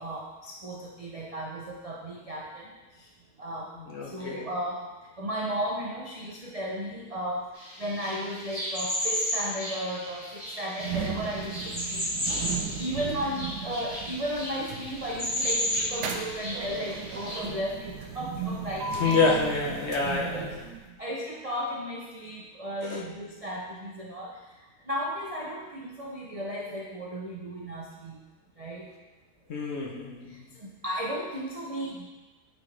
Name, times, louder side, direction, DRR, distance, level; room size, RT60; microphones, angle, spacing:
voice 1, 0.0-3.1 3.4-3.7 4.0-12.4 12.8-19.2 20.3-20.6 21.0-28.2 28.6-28.9 30.3-32.1, equal, 55° right, -3 dB, 0.4 m, -35 dB
voice 2, 3.9-4.5 18.9-20.6 22.8-23.0 29.5-30.3, left 4 dB, 55° left, -1 dB, 0.8 m, -27 dB
sound 1, 7.6-17.4, equal, 30° left, 2.4 m, -33 dB
sound 2, 10.8-21.0, right 5 dB, 85° right, 1.2 m, -36 dB
9.0 x 4.4 x 3.2 m, 1.2 s
omnidirectional pair, 1.7 m